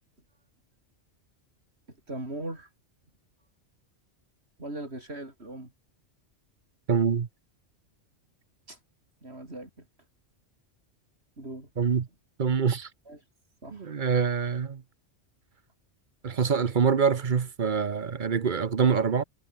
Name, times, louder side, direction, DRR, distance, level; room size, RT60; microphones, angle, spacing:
voice 1, 2.1-2.7 4.6-5.7 8.7-8.8 9.2-9.7 11.4-11.7 13.1-13.2 13.6-13.9, right 1 dB, 60° right, 6.9 m, -39 dB
voice 2, 6.9-7.3 11.8-12.1 12.4-12.9 13.7-14.8 16.2-19.2, right 6 dB, 45° right, 1.0 m, -25 dB
omnidirectional pair, 1.2 m